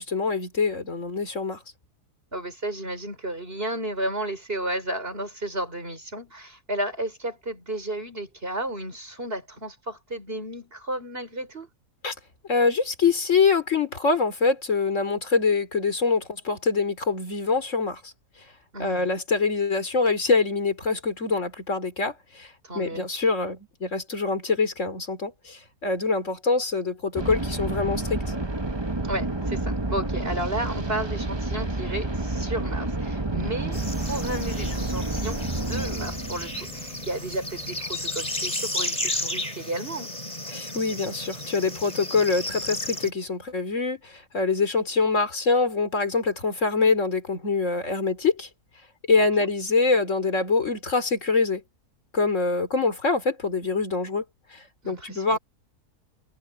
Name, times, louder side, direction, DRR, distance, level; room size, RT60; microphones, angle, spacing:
voice 1, 0.0-1.6 12.0-12.1 12.5-18.1 18.8-28.2 40.5-48.5 49.1-51.6 52.1-54.2 54.5-55.4, left 4 dB, 50° left, 3.8 m, -24 dB
voice 2, 2.3-11.7 18.7-19.1 22.6-23.1 29.0-40.2 54.8-55.4, right 1 dB, 35° right, 6.6 m, -33 dB
sound 1, 27.2-37.9, right 2 dB, 15° right, 1.5 m, -30 dB
sound 2, 33.7-43.1, left 1 dB, 25° left, 4.9 m, -33 dB
omnidirectional pair, 1.7 m